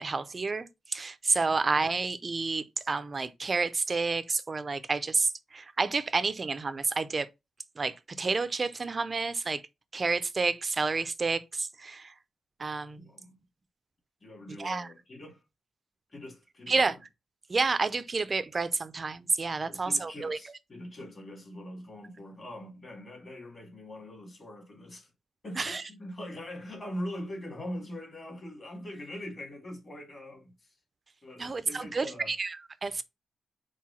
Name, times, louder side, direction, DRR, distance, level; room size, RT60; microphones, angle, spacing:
voice 1, 0.0-7.3 7.8-9.6 9.9-12.1 12.6-13.1 14.6-14.9 16.7-17.0 17.5-20.4 25.6-25.8 31.4-32.6 32.8-33.0, right 4 dB, 30° right, 0.5 m, -30 dB
voice 2, 13.0-13.4 14.2-15.4 16.1-17.0 19.7-25.1 25.4-30.8 31.2-32.3, left 1 dB, 30° left, 2.1 m, -42 dB
4.8 x 4.4 x 5.6 m
wide cardioid pair, 170°, 0 cm